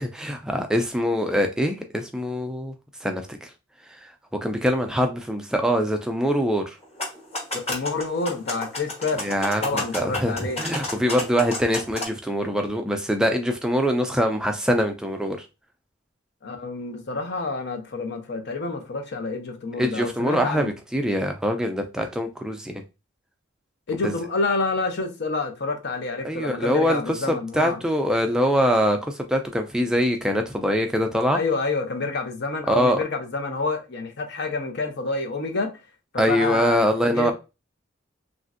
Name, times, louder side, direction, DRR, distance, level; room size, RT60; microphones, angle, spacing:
voice 1, 0.0-2.7 3.0-3.5 3.9-4.1 4.4-6.8 9.2-15.5 19.8-22.8 24.0-24.1 26.2-31.4 32.7-33.0 36.2-37.3, equal, 5° right, 0.3 m, -23 dB
sound 1, 6.8-12.1, left 1 dB, 35° left, 1.1 m, -32 dB
voice 2, 7.5-9.2 9.6-10.6 16.4-20.7 23.9-27.8 31.3-35.7 36.1-37.3, left 3 dB, 60° left, 0.6 m, -28 dB
3.1 x 2.5 x 2.5 m
head